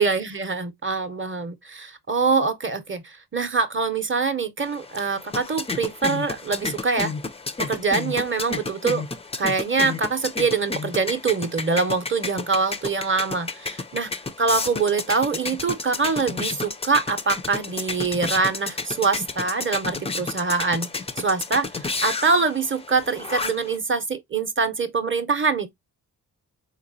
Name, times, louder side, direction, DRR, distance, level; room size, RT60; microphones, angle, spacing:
voice 1, 0.0-7.1 7.6-9.0 9.4-14.1 14.4-20.9 21.2-25.7, right 4 dB, 30° right, 0.7 m, -24 dB
sound 1, 4.6-23.8, left 3 dB, 15° left, 0.4 m, -32 dB
3.6 x 2.9 x 2.6 m
cardioid pair, 55°, 40 cm